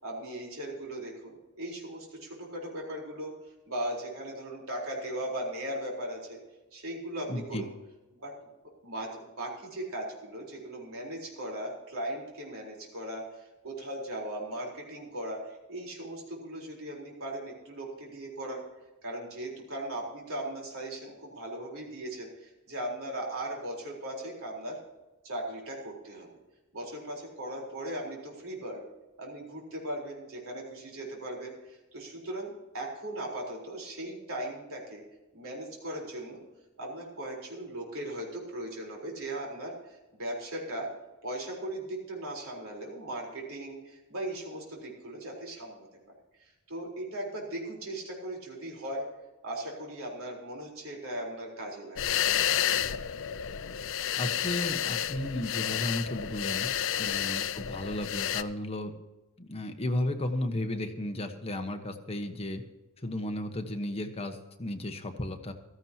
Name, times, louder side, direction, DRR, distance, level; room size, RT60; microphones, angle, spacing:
voice 1, 0.0-6.4 6.7-7.7 8.1-8.3 8.8-18.6 19.0-24.8 25.2-26.3 26.7-28.8 29.2-35.0 35.3-36.4 36.8-40.9 41.2-49.1 49.4-52.0 57.0-57.2, right 1 dB, 65° right, -2 dB, 4.2 m, -38 dB
voice 2, 7.3-7.6 54.2-58.9 59.4-62.6 63.0-65.5, left 1 dB, 30° left, 5 dB, 1.2 m, -34 dB
sound 1, 52.0-58.4, left 10 dB, 65° left, 0.6 m, -30 dB
15.5 x 14.0 x 2.9 m, 1.1 s
head